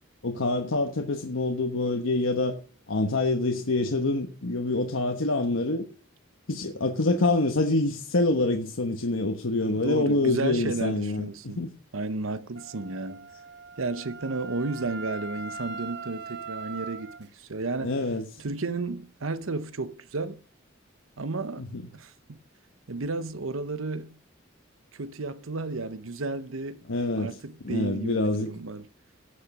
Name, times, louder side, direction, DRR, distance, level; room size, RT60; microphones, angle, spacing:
voice 1, 0.2-2.6 2.9-5.8 6.5-11.7 17.8-18.3 21.6-21.8 26.9-27.4 27.6-28.5, left 2 dB, 80° left, 1.1 m, -26 dB
voice 2, 9.7-11.6 11.9-13.3 13.8-17.9 18.4-20.4 21.2-21.7 21.9-22.4 22.9-24.1 24.9-26.8 27.2-28.8, right 3 dB, 85° right, 0.9 m, -33 dB
Wind instrument woodwind instrument, 12.5-17.2, right 4 dB, 55° right, 0.8 m, -40 dB
16.5 x 6.6 x 6.0 m
head